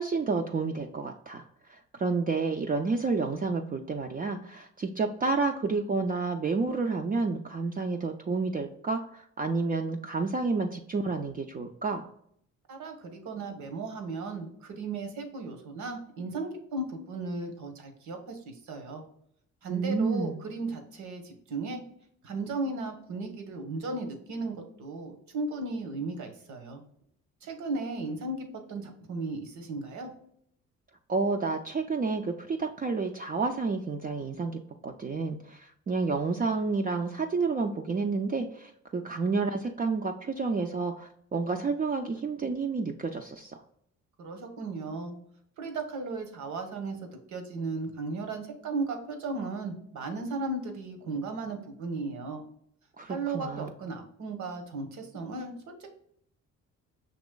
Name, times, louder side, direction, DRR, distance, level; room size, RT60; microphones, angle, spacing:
voice 1, 0.0-1.4 1.7-12.0 19.7-20.4 31.1-43.6 53.0-53.7, right 4 dB, 30° right, 3 dB, 0.4 m, -30 dB
voice 2, 12.7-19.1 19.6-21.8 22.2-26.8 27.4-30.1 44.2-45.1 45.6-52.4 53.1-55.9, right 3 dB, 70° right, 5 dB, 1.1 m, -36 dB
6.1 x 2.9 x 2.2 m, 0.68 s
cardioid pair, 90°, 30 cm